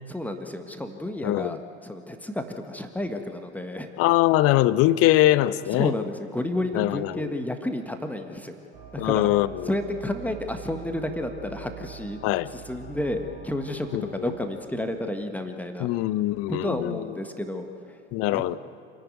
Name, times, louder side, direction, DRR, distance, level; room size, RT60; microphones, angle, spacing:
voice 1, 0.1-3.9 5.7-8.5 8.9-9.3 9.6-12.2 12.5-16.0 16.5-18.0 18.3-18.4, left 1 dB, 5° left, 1.6 m, -31 dB
voice 2, 1.2-1.6 4.0-5.9 6.8-7.3 9.0-9.5 12.2-12.5 13.9-14.0 15.8-17.0 18.1-18.6, left 15 dB, 40° left, 0.7 m, -22 dB
sound 1, 8.7-14.5, right 7 dB, 65° right, 4.6 m, -44 dB
27.5 x 11.0 x 9.4 m
figure-of-eight pair, 75°, 36 cm